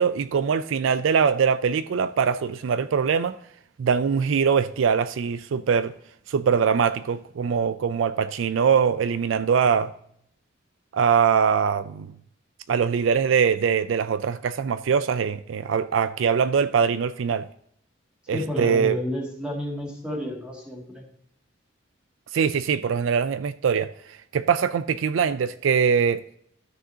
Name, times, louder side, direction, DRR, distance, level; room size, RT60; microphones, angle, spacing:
voice 1, 0.0-3.4 3.8-5.9 6.3-9.9 10.9-12.1 12.7-17.5 18.3-19.0 22.3-23.9 24.3-26.2, right 6 dB, 75° right, 0.4 m, -22 dB
voice 2, 18.3-21.1, left 1 dB, 5° right, 2.2 m, -31 dB
13.0 x 6.4 x 2.8 m
head